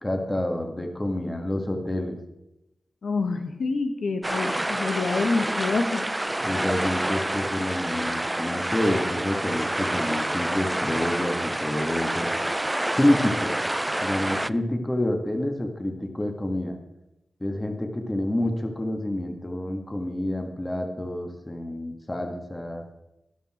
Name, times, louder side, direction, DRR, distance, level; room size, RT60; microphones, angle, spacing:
voice 1, 0.0-2.2 6.4-12.3 13.0-13.5 14.0-16.8 17.4-22.8, left 1 dB, 20° left, 4 dB, 2.0 m, -28 dB
voice 2, 3.0-6.1, left 3 dB, 80° left, 6 dB, 1.5 m, -27 dB
sound 1, 4.2-14.5, right 1 dB, 15° right, 0.4 m, -28 dB
12.5 x 11.5 x 4.5 m, 0.92 s
cardioid pair, 50°, 0 cm